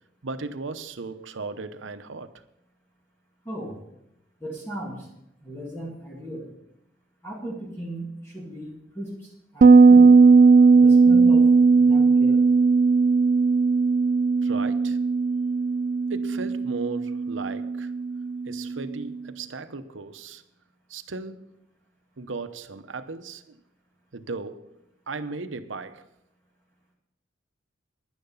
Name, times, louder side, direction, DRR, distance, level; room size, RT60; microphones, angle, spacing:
voice 1, 0.2-2.3 14.4-15.0 16.1-17.9 18.5-20.4 20.9-21.5 22.2-23.6 24.1-24.7 25.1-26.0, right 3 dB, 80° right, 0.8 m, -36 dB
voice 2, 3.5-3.8 4.4-5.1 5.4-6.5 7.2-10.3 10.7-12.4, right 1 dB, 15° left, 2.1 m, -36 dB
Bass guitar, 9.6-19.0, right 4 dB, 45° right, 0.3 m, -17 dB
10.5 x 10.5 x 5.6 m
head